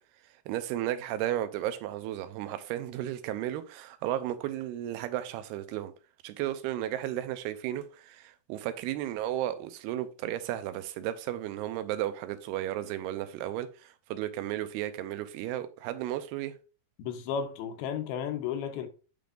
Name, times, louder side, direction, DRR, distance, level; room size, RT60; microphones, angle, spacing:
voice 1, 0.5-5.9 6.2-16.5, right 12 dB, 90° right, 2.7 m, -34 dB
voice 2, 17.0-18.9, left 7 dB, 80° left, 2.6 m, -33 dB
9.3 x 5.1 x 2.5 m
omnidirectional pair, 4.5 m